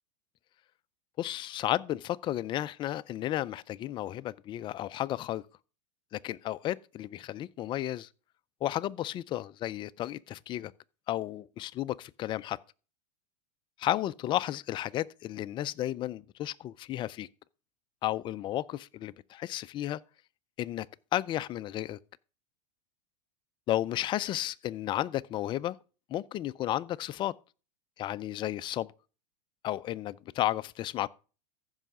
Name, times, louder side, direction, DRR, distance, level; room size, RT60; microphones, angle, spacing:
voice 1, 1.2-5.4 6.1-8.1 8.6-10.7 11.1-12.6 13.8-17.3 18.0-20.0 20.6-20.9 21.1-22.0 23.7-25.8 26.1-27.3 28.0-28.9 29.6-31.1, left 13 dB, 25° left, 0.3 m, -33 dB
14.5 x 5.6 x 3.6 m
supercardioid pair, 130°, 20 cm